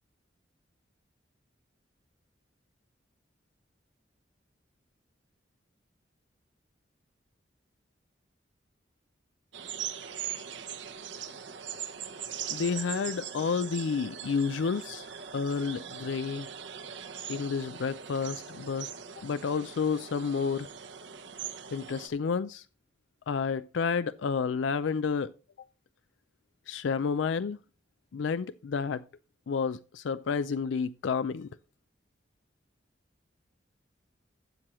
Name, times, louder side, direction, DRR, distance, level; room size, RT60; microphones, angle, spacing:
sound 1, 9.5-22.1, right 8 dB, 75° right, 1.0 m, -41 dB
voice 1, 12.5-16.5 17.3-18.9 19.2-20.7 21.7-22.6 23.3-25.3 26.7-27.6 28.1-29.0 29.5-31.5, left 5 dB, 80° left, 0.4 m, -30 dB
12.5 x 7.5 x 3.0 m
head